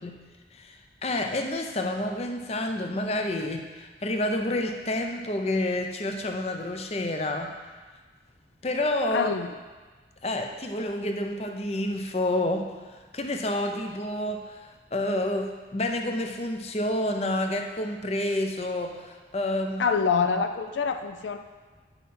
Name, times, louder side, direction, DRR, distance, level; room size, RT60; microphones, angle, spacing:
voice 1, 0.5-7.5 8.6-9.3 10.2-19.8, left 1 dB, 35° left, 4 dB, 0.6 m, -29 dB
voice 2, 9.1-9.5 19.8-21.4, left 5 dB, 85° left, 8 dB, 0.4 m, -25 dB
9.4 x 5.7 x 4.3 m, 1.4 s
head